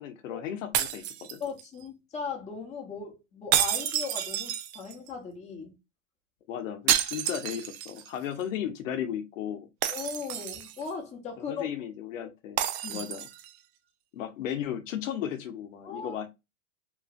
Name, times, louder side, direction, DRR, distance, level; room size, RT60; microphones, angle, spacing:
voice 1, 0.0-1.4 6.5-9.7 11.5-12.6 12.9-13.3 14.1-16.3, left 9 dB, 80° left, 0.8 m, -35 dB
sound 1, 0.7-1.8 3.5-5.1 6.9-8.1 8.4-8.5 9.8-10.9 12.6-13.5, right 11 dB, 55° right, 0.5 m, -29 dB
voice 2, 1.4-5.8 9.9-11.6 12.8-13.1 15.8-16.2, left 5 dB, 15° left, 0.9 m, -38 dB
3.0 x 2.4 x 2.4 m
supercardioid pair, 125°, 39 cm